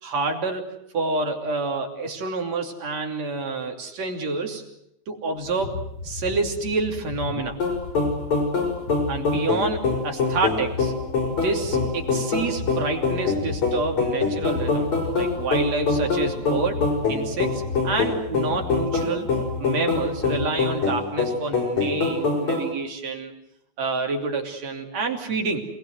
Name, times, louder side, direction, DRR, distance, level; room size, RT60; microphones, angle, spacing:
voice 1, 0.0-4.6 5.1-5.8 6.0-7.6 9.1-10.9 11.4-14.9 15.1-19.3 19.6-23.3 23.8-25.6, right 3 dB, 60° right, 3 dB, 4.1 m, -28 dB
sound 1, 5.4-21.0, left 4 dB, 40° left, 1.8 m, -35 dB
sound 2, 7.6-22.7, left 4 dB, 70° left, 6.2 m, -24 dB
27.5 x 20.5 x 7.8 m, 0.78 s
omnidirectional pair, 3.4 m